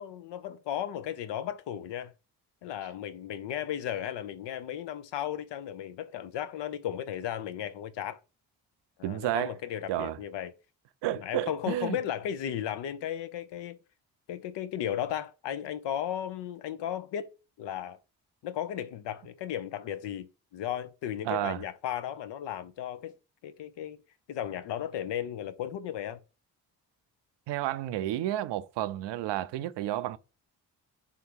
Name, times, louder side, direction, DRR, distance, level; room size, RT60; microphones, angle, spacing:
voice 1, 0.0-2.1 2.6-8.2 9.0-10.5 11.2-13.8 14.3-17.3 17.6-18.0 18.4-23.1 23.4-24.0 24.3-26.2, left 10 dB, 65° left, 0.6 m, -35 dB
voice 2, 9.0-9.5 9.9-10.2 11.0-12.0 21.3-21.6 27.5-30.2, right 13 dB, 65° right, 0.5 m, -31 dB
3.4 x 2.8 x 3.7 m
hypercardioid pair, 45°, 46 cm